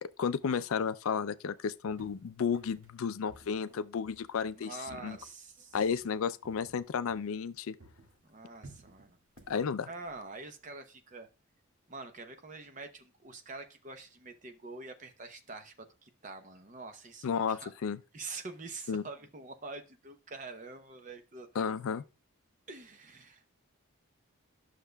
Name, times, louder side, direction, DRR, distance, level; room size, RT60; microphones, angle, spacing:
voice 1, 0.0-4.7 5.0-5.2 5.7-7.8 9.5-9.9 17.2-18.0 18.9-19.0 21.6-22.0, left 6 dB, 75° left, 0.4 m, -32 dB
sound 1, 1.9-7.5 7.8-10.7, right 2 dB, 75° right, 1.7 m, -57 dB
voice 2, 4.6-5.8 8.2-9.2 9.9-11.3 11.9-17.7 18.1-21.8 22.7-23.5, right 3 dB, 35° right, 0.7 m, -46 dB
10.0 x 6.5 x 2.2 m
head